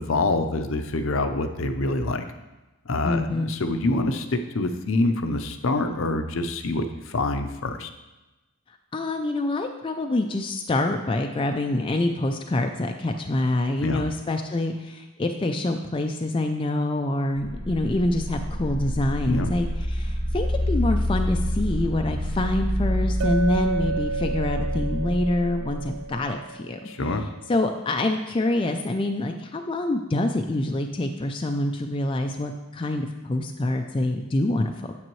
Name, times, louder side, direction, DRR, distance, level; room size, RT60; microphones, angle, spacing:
voice 1, 0.0-2.2 2.9-7.9 13.8-14.1 19.3-19.5 26.9-27.2, left 2 dB, 65° left, 7 dB, 0.6 m, -26 dB
voice 2, 3.0-3.5 8.9-26.8 27.5-34.7, left 2 dB, 25° left, 4 dB, 0.3 m, -26 dB
sound 1, 17.4-26.1, equal, 45° right, 1.3 m, -28 dB
Chink clink, 23.2-27.2, right 4 dB, 80° right, 0.3 m, -31 dB
8.9 x 7.9 x 3.1 m, 1.1 s
head